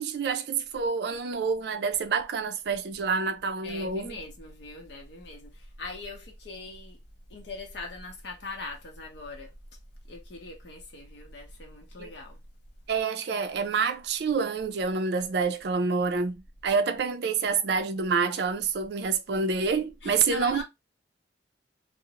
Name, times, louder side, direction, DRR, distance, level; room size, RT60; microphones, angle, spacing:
voice 1, 0.0-4.2 12.0-12.1 12.9-20.6, right 5 dB, 60° right, 0.4 m, -27 dB
voice 2, 3.6-7.0 7.3-9.5 10.1-12.4 20.0-20.6, left 2 dB, 65° left, 0.7 m, -41 dB
2.5 x 2.0 x 2.8 m
head